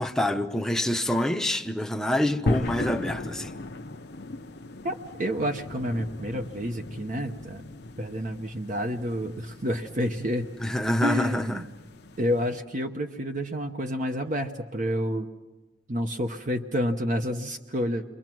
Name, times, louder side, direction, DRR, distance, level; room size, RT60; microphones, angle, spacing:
voice 1, 0.0-3.6 10.6-11.6, left 1 dB, 5° left, 0.8 m, -26 dB
sound 1, 2.5-12.6, left 2 dB, 60° left, 0.9 m, -36 dB
voice 2, 4.8-7.6 8.0-10.5 11.0-11.7 12.2-15.3 15.9-18.0, equal, 45° right, 0.9 m, -29 dB
28.5 x 23.5 x 6.1 m
head